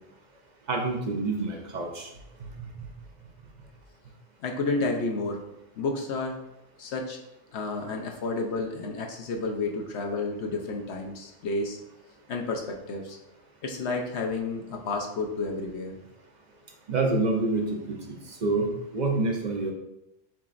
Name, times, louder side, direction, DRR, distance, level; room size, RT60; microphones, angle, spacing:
voice 1, 0.7-2.1 2.6-2.7 16.9-18.0 18.4-19.7, right 3 dB, 50° right, 2 dB, 0.6 m, -27 dB
voice 2, 4.4-5.4 5.8-6.4 6.8-7.2 7.5-11.8 12.3-13.2 13.6-16.0, left 3 dB, 65° left, 2 dB, 0.9 m, -31 dB
7.3 x 2.9 x 2.5 m, 0.87 s
omnidirectional pair, 1.3 m